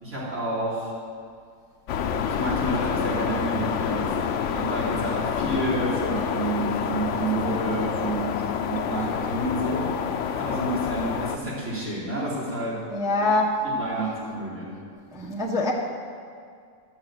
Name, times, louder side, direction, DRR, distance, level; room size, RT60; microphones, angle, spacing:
voice 1, 0.0-0.9 2.3-4.1 4.5-8.3 8.6-9.9 10.4-12.7 13.8-14.7, right 1 dB, 40° right, -8 dB, 4.1 m, -29 dB
sound 1, 1.9-11.4, left 7 dB, 85° left, 0.6 m, -28 dB
voice 2, 12.9-13.6 15.1-15.7, left 2 dB, ahead, -3 dB, 0.9 m, -24 dB
10.5 x 7.2 x 7.5 m, 2.2 s
omnidirectional pair, 1.9 m